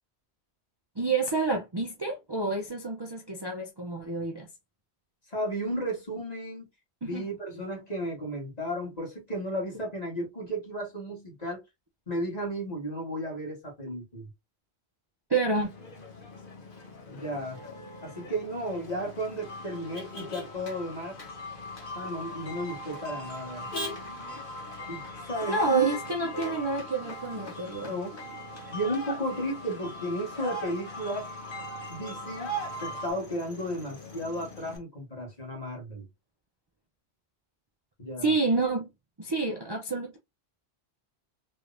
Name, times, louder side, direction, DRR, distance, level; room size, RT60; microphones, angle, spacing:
voice 1, 1.0-4.5 7.0-7.3 15.3-15.7 25.5-27.9 38.2-38.9 39.2-40.2, right 3 dB, 30° right, 0.6 m, -28 dB
voice 2, 5.3-6.7 7.0-11.6 12.1-14.3 17.1-17.6 18.0-21.2 22.0-23.7 24.9-25.0 25.3-25.9 27.9-28.2 28.7-31.3 31.9-32.5 32.8-36.1 38.0-38.3, equal, 40° left, 1.8 m, -34 dB
Motor vehicle (road), 15.6-34.8, equal, 55° left, 1.3 m, -42 dB
sound 1, 19.4-33.1, left 1 dB, 80° left, 1.6 m, -42 dB
3.3 x 3.3 x 2.5 m
omnidirectional pair, 1.1 m